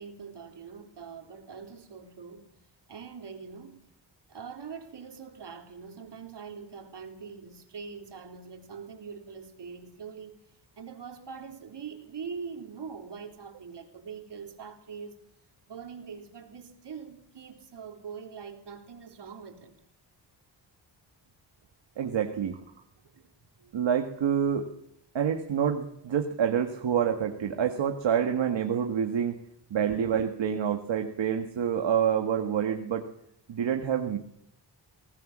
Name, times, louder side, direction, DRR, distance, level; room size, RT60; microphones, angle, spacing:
voice 1, 0.0-2.5 2.9-3.8 4.3-10.4 10.8-15.2 15.7-19.7 23.1-23.3, right 6 dB, 65° right, 4 dB, 3.8 m, -43 dB
voice 2, 22.0-22.6 23.7-24.7 25.1-29.4 29.7-33.1 33.5-34.2, right 8 dB, 85° right, 4 dB, 1.8 m, -27 dB
21.0 x 18.0 x 7.4 m, 0.75 s
wide cardioid pair, 95°, 44 cm